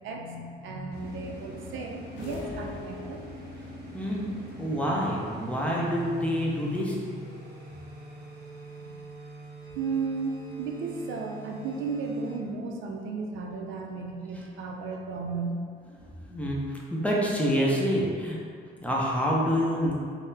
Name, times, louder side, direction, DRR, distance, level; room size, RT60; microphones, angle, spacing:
voice 1, 0.0-3.3 3.7-3.9 8.8-8.9 9.7-15.6, right 4 dB, 80° right, 1 dB, 0.4 m, -34 dB
sound 1, 0.9-12.5, right 1 dB, 55° right, 0.8 m, -43 dB
sound 2, 2.2-3.7, left 3 dB, 70° left, 0.5 m, -40 dB
voice 2, 3.9-4.3 4.6-7.0 16.3-18.4 18.8-19.9, equal, 5° left, -4 dB, 0.5 m, -27 dB
3.6 x 2.0 x 2.7 m, 2.1 s
cardioid pair, 90°, 20 cm